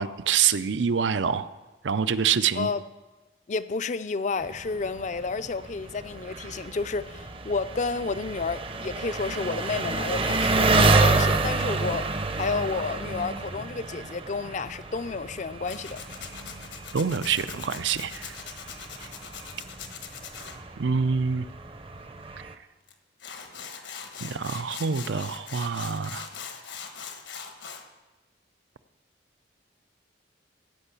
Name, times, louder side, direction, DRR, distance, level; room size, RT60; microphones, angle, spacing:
voice 1, 0.0-1.5 1.8-2.7 16.9-18.3 20.8-21.5 24.2-26.3, right 6 dB, 80° right, 0.5 m, -26 dB
voice 2, 3.5-12.1 12.4-16.0, left 4 dB, 40° left, 0.4 m, -31 dB
Engine, 4.4-22.5, right 3 dB, 30° right, 0.6 m, -29 dB
Tools, 15.7-20.6 22.9-23.0 23.2-27.8, left 7 dB, 80° left, 1.3 m, -41 dB
16.0 x 5.5 x 8.3 m
head